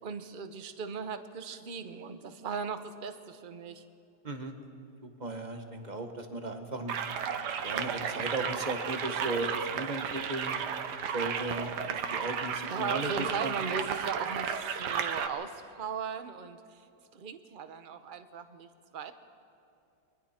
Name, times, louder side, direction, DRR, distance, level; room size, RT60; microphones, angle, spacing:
voice 1, 0.0-3.8 12.6-16.9 17.1-18.7 18.9-19.1, right 6 dB, 40° right, 9 dB, 0.7 m, -38 dB
voice 2, 5.2-6.9 7.6-10.6 11.1-13.5, right 2 dB, 25° right, 5 dB, 1.3 m, -36 dB
sound 1, 6.9-15.3, right 7 dB, 70° right, 1.5 m, -33 dB
29.0 x 22.5 x 4.4 m, 2.7 s
omnidirectional pair, 2.0 m